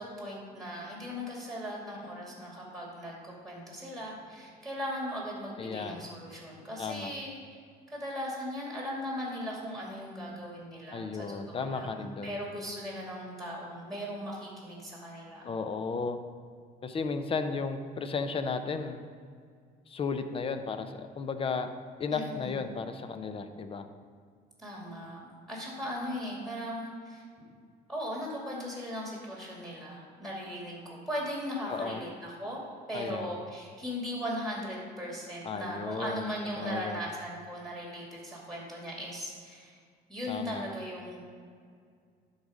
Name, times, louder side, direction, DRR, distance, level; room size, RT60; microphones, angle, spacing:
voice 1, 0.0-7.4 7.9-15.5 22.1-22.6 24.6-25.2 25.5-27.2 27.9-32.6 32.9-39.7 40.1-41.2, equal, ahead, -3 dB, 2.4 m, -38 dB
voice 2, 5.6-6.1 6.8-7.1 10.9-12.4 15.4-16.2 16.8-19.0 19.9-21.7 22.0-23.8 31.7-32.0 32.9-33.3 35.4-36.3 36.6-37.1 40.3-40.7, left 4 dB, 35° left, 8 dB, 0.6 m, -34 dB
11.5 x 4.1 x 4.9 m, 2.1 s
cardioid pair, 110°, 17 cm